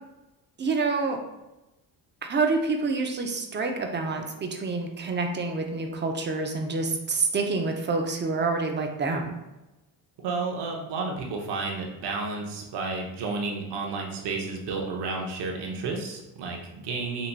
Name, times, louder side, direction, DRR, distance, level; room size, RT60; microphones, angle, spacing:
voice 1, 0.6-1.2 2.3-9.3, right 3 dB, 25° right, 3 dB, 0.5 m, -27 dB
voice 2, 10.2-17.3, right 3 dB, 70° right, 0 dB, 0.8 m, -31 dB
4.0 x 2.8 x 2.2 m, 0.99 s
cardioid pair, 85°, 42 cm